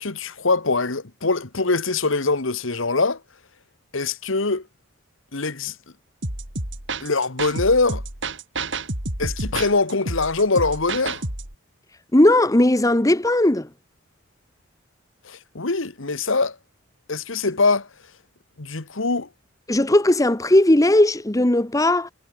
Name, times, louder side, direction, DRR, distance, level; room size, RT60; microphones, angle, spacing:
voice 1, 0.0-3.2 3.9-4.7 5.3-5.7 7.0-8.0 9.2-11.2 15.2-16.6 17.1-17.9 18.6-19.3, left 3 dB, 70° left, 1.6 m, -23 dB
sound 1, 6.2-11.5, right 2 dB, 60° right, 5.4 m, -30 dB
voice 2, 12.1-13.7 19.7-22.1, left 1 dB, 15° left, 1.0 m, -17 dB
head